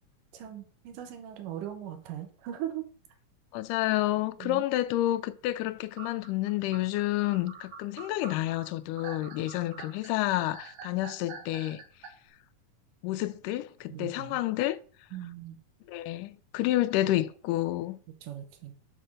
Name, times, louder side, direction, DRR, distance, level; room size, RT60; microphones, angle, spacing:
voice 1, 0.3-2.9 4.4-4.6 9.7-9.8 13.9-14.4 15.1-15.6 18.2-18.7, right 11 dB, 85° right, 2.6 m, -39 dB
voice 2, 3.5-11.8 13.0-14.8 15.9-18.0, left 15 dB, 85° left, 2.1 m, -29 dB
sound 1, 6.0-12.1, right 5 dB, 65° right, 2.3 m, -46 dB
5.9 x 5.6 x 6.3 m
omnidirectional pair, 3.6 m